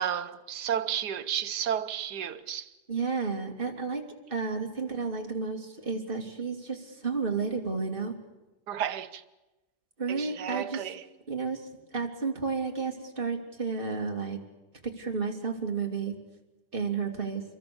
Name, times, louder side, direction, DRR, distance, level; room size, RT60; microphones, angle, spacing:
voice 1, 0.0-2.7 8.7-9.2 10.1-11.1, right 9 dB, 80° right, 1.6 m, -32 dB
voice 2, 2.9-4.0 4.3-8.1 10.0-10.8 11.3-11.6 11.9-14.4 15.0-16.2 16.7-17.4, right 5 dB, 30° right, 2.9 m, -31 dB
27.0 x 23.0 x 7.0 m
omnidirectional pair, 1.8 m